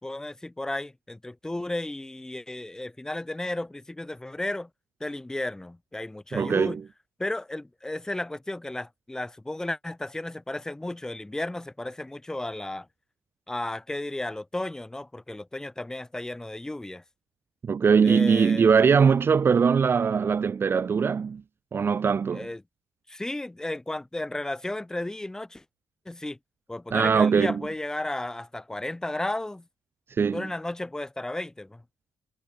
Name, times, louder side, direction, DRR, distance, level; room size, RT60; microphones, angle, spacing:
voice 1, 0.0-4.7 5.0-6.8 7.2-12.9 13.5-17.0 18.0-18.7 22.3-22.6 23.1-25.6 26.0-26.4 26.7-29.6 30.3-31.8, left 1 dB, 10° left, 3.2 m, -34 dB
voice 2, 6.3-6.8 17.6-21.4 21.7-22.5 26.9-27.6 30.2-30.5, right 6 dB, 30° right, 1.8 m, -21 dB
cardioid pair, 160°, 8 cm